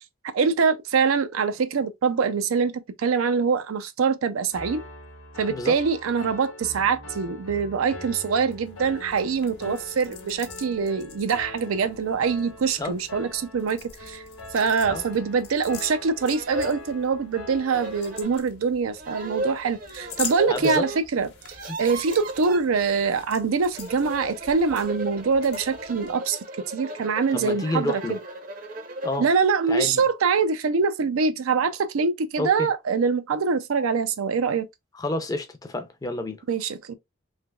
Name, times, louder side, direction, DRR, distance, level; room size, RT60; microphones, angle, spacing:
voice 1, 0.3-4.8 5.4-14.2 14.5-21.3 21.8-26.4 26.7-28.2 29.2-34.7 36.5-36.9, right 5 dB, 85° right, 0.5 m, -24 dB
Piano, 4.5-18.2, left 2 dB, 85° left, 0.9 m, -42 dB
sound 1, 8.5-26.1, left 7 dB, 50° left, 0.8 m, -44 dB
sound 2, 14.6-14.7 15.1-15.2 15.9-16.0 16.2-16.8 17.7-18.4 19.0-21.0 21.3-22.6 23.6-29.3, right 1 dB, 40° right, 0.6 m, -35 dB
voice 2, 20.5-20.9 27.3-28.2 29.0-29.3 29.7-30.0 32.4-32.7 34.9-36.4, left 2 dB, 15° left, 0.5 m, -29 dB
3.3 x 2.9 x 2.2 m
head